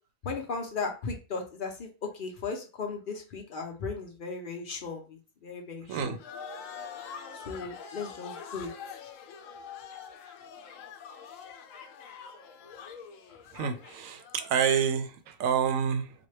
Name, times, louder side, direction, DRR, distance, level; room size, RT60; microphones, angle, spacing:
voice 1, 0.2-6.1 7.3-8.7, left 4 dB, 55° left, 0.6 m, -36 dB
sound 1, 6.2-14.9, left 6 dB, 75° left, 0.9 m, -45 dB
voice 2, 13.5-16.1, right 7 dB, 80° right, 1.0 m, -28 dB
4.0 x 2.2 x 3.2 m
omnidirectional pair, 1.4 m